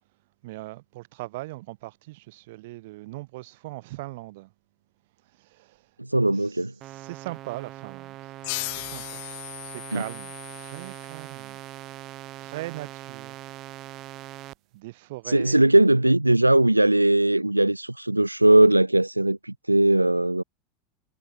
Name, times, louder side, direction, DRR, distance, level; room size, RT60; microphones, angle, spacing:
voice 1, 0.4-4.5 5.3-5.9 6.3-8.4 8.7-9.2 9.6-11.6 12.4-13.4 14.7-15.6, right 20 dB, 55° right, 2.3 m, -40 dB
voice 2, 6.0-6.7 9.9-10.0 15.3-20.4, right 1 dB, 90° right, 0.5 m, -19 dB
sound 1, 6.8-14.5, right 15 dB, 40° right, 1.1 m, -41 dB
sound 2, 8.4-11.7, left 29 dB, 55° left, 3.2 m, -37 dB
figure-of-eight pair, 80°, 0 cm